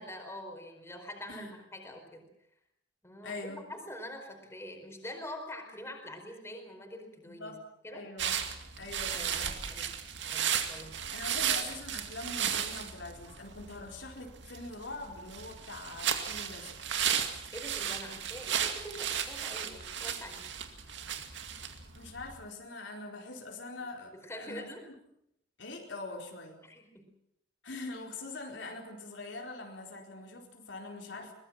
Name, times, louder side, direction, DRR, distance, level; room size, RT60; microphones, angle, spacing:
voice 1, 0.0-2.2 3.0-7.6 7.8-8.1 9.1-9.9 10.2-11.0 17.5-20.5 24.1-24.9 26.6-27.1 31.2-31.3, left 1 dB, 15° left, 3 dB, 4.7 m, -45 dB
voice 2, 3.2-3.7 7.2-7.6 7.9-9.5 11.1-16.8 21.6-21.7 21.9-24.8 25.6-26.6 27.6-31.3, left 2 dB, 80° left, 2 dB, 4.5 m, -43 dB
sound 1, 8.2-22.4, right 8 dB, 75° right, 2.3 m, -35 dB
23.0 x 20.5 x 7.6 m, 0.75 s
head